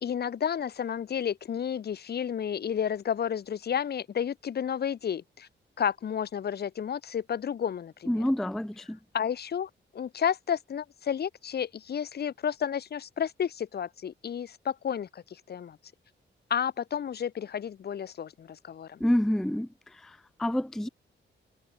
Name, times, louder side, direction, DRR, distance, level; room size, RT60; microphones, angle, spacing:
voice 1, 0.0-5.5 5.8-8.1 9.1-15.8 16.5-19.0, left 8 dB, 55° left, 1.3 m, -31 dB
voice 2, 8.1-9.0 19.0-20.9, left 1 dB, ahead, 0.4 m, -28 dB
wide cardioid pair, 165°, 19 cm